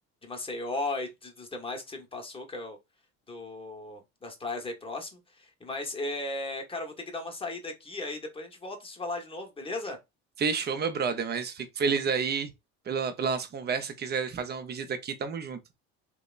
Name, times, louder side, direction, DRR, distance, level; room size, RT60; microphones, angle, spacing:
voice 1, 0.2-2.8 3.3-10.0, left 2 dB, 15° left, 0.9 m, -36 dB
voice 2, 10.4-12.5 12.9-15.6, right 5 dB, 30° right, 0.6 m, -30 dB
2.8 x 2.1 x 2.3 m
supercardioid pair, 85°, 32 cm